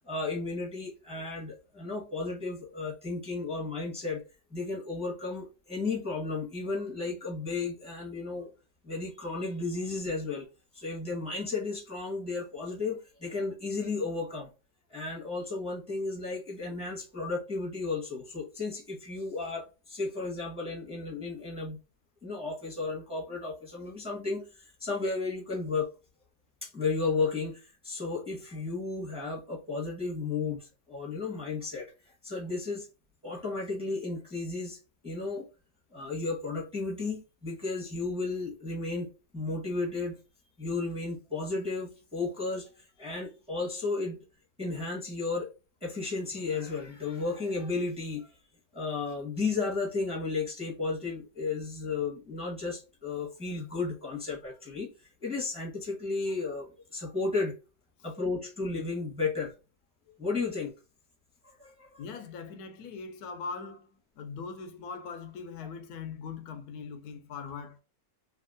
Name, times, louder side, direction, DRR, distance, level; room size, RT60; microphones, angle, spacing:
voice 1, 0.0-4.2 4.5-8.5 8.8-10.5 10.7-14.5 14.9-21.8 22.2-25.9 26.6-32.9 33.2-35.4 35.9-40.2 40.6-44.2 44.6-45.5 45.8-48.3 48.7-54.9 55.2-57.5 58.0-59.5 60.2-60.7 61.4-62.0, left 3 dB, 5° right, 1.1 m, -33 dB
voice 2, 62.0-63.9 64.2-67.8, left 5 dB, 70° left, 1.1 m, -41 dB
3.4 x 2.8 x 2.6 m
omnidirectional pair, 1.9 m